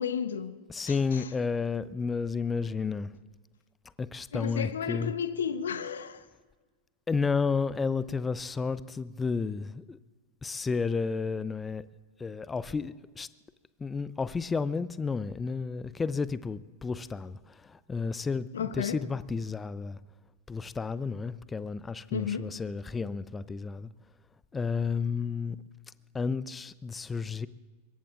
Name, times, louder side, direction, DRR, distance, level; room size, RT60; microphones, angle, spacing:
voice 1, 0.0-0.5 0.9-1.2 4.3-6.2 18.5-19.0 22.1-22.5, left 7 dB, 65° left, 1.0 m, -33 dB
voice 2, 0.7-3.1 4.0-5.1 7.1-10.0 10.4-11.8 12.2-13.3 13.8-20.0 20.5-23.9 24.5-25.6 26.1-27.5, left 5 dB, 15° left, 0.6 m, -32 dB
24.5 x 22.0 x 2.5 m
figure-of-eight pair, 90°, 0 cm